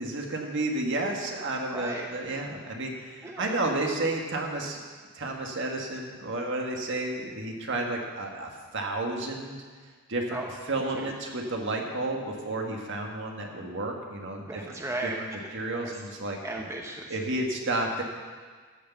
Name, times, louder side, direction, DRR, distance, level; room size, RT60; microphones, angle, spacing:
voice 1, 0.0-4.8 5.1-9.6 10.1-10.4 10.7-14.6 15.0-16.4 17.1-18.0, right 2 dB, 55° right, 1 dB, 1.7 m, -31 dB
voice 2, 1.7-2.1 3.2-3.6 10.3-10.5 10.9-11.1 14.4-15.2 15.8-16.0 16.4-17.1, right 2 dB, 15° right, 1 dB, 0.8 m, -36 dB
13.5 x 6.7 x 7.2 m, 1.5 s
head